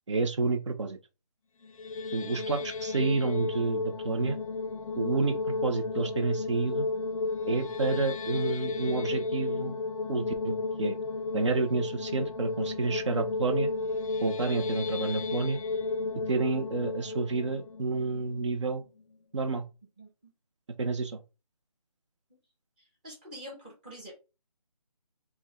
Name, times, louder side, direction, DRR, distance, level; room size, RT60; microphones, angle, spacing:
voice 1, 0.1-1.0 2.1-4.4 5.0-6.9 7.5-9.8 10.1-10.9 11.3-13.7 14.2-15.6 16.3-18.8 19.3-19.6 20.8-21.2, right 3 dB, 50° right, 0.7 m, -29 dB
sound 1, 1.6-18.8, left 3 dB, 60° left, 0.5 m, -33 dB
voice 2, 20.0-20.3 23.0-24.2, equal, 15° right, 0.8 m, -46 dB
4.4 x 2.2 x 3.5 m
figure-of-eight pair, 170°, 20 cm